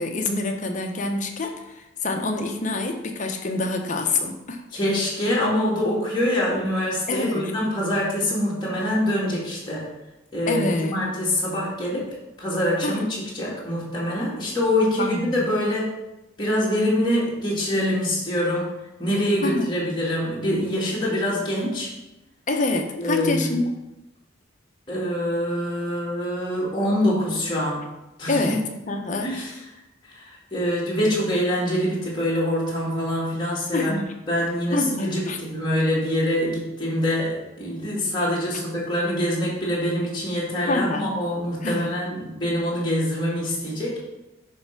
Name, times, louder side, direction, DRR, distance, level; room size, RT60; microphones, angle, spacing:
voice 1, 0.0-4.6 7.1-7.5 10.5-11.0 12.8-13.0 15.0-15.5 19.4-19.7 22.5-23.7 28.3-29.3 33.7-34.1 34.7-35.4 40.7-41.1 41.6-41.9, left 2 dB, 40° left, 4 dB, 0.8 m, -26 dB
voice 2, 4.7-9.9 10.3-10.7 10.9-12.1 12.4-15.9 16.4-18.7 19.0-21.9 23.0-23.6 24.9-27.8 28.2-28.5 29.2-29.5 30.0-34.0 34.3-44.0, left 1 dB, 25° left, -6 dB, 2.2 m, -25 dB
9.1 x 3.3 x 5.9 m, 0.97 s
head